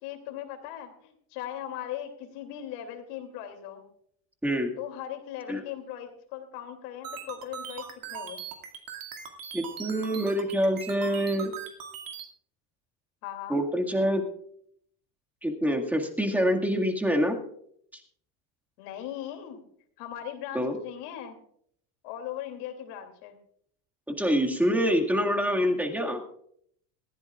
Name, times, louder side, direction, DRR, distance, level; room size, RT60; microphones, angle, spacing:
voice 1, 0.0-3.8 4.8-8.4 13.2-13.6 18.8-19.6 20.0-21.4 22.0-23.4, left 11 dB, 85° left, 5 dB, 3.0 m, -39 dB
sound 1, 7.0-12.3, right 7 dB, 50° right, 2.4 m, -40 dB
voice 2, 9.5-11.5 13.5-14.2 15.4-17.4 20.5-20.8 24.1-26.2, equal, 5° right, 2 dB, 1.9 m, -26 dB
20.0 x 15.0 x 2.4 m, 0.65 s
cardioid pair, 130°, 45 cm